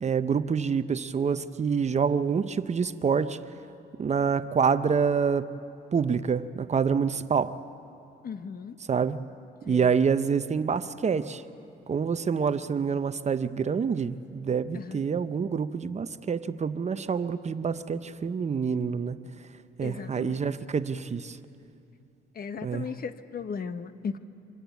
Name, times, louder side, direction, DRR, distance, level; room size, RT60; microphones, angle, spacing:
voice 1, 0.0-3.4 4.0-5.5 5.9-7.6 8.9-9.2 9.7-11.4 11.9-19.2 19.8-21.4 22.6-22.9, right 6 dB, 35° right, 12 dB, 0.7 m, -27 dB
voice 2, 8.2-8.8 9.7-9.9 14.7-15.0 19.8-20.5 22.3-24.2, left 6 dB, 50° left, 11 dB, 1.0 m, -36 dB
25.0 x 14.0 x 9.3 m, 2.7 s
cardioid pair, 90°, 20 cm